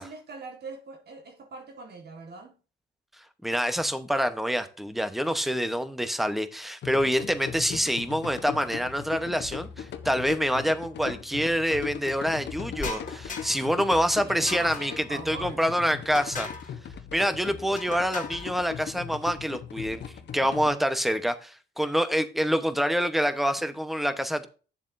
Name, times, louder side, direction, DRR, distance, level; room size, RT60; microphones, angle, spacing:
voice 1, 0.0-2.6 14.2-15.6, right 4 dB, 55° right, 1.7 m, -42 dB
voice 2, 3.4-16.5 17.1-24.5, equal, ahead, 1.0 m, -26 dB
sound 1, 6.8-20.7, left 8 dB, 60° left, 1.1 m, -39 dB
sound 2, 12.8-13.8 14.5-15.1 16.1-16.7 17.8-18.5, left 4 dB, 40° left, 1.7 m, -37 dB
9.9 x 7.1 x 2.7 m
cardioid pair, 90°, 20 cm